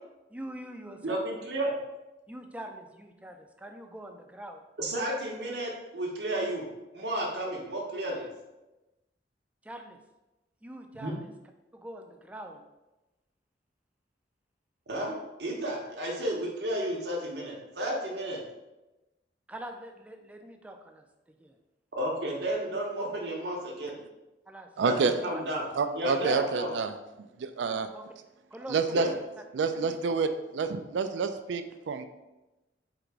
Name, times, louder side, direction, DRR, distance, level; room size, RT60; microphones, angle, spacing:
voice 1, 0.3-1.4 2.3-4.6 9.6-10.0 10.6-11.3 11.7-12.7 19.5-21.6 24.5-25.4 27.9-28.1 28.5-29.2 29.7-30.2, right 1 dB, 10° right, 4 dB, 0.3 m, -44 dB
voice 2, 1.0-1.7 4.8-6.6 6.9-8.3 11.0-11.2 14.9-18.4 22.0-24.0 24.8-25.6 25.9-26.7 28.9-29.1, right 1 dB, 70° right, -3 dB, 0.8 m, -32 dB
voice 3, 24.8-25.1 25.7-26.9 27.4-27.9 28.7-29.1 29.5-30.3 30.5-32.0, right 5 dB, 90° right, 10 dB, 0.4 m, -28 dB
3.8 x 2.9 x 4.6 m, 1.0 s
head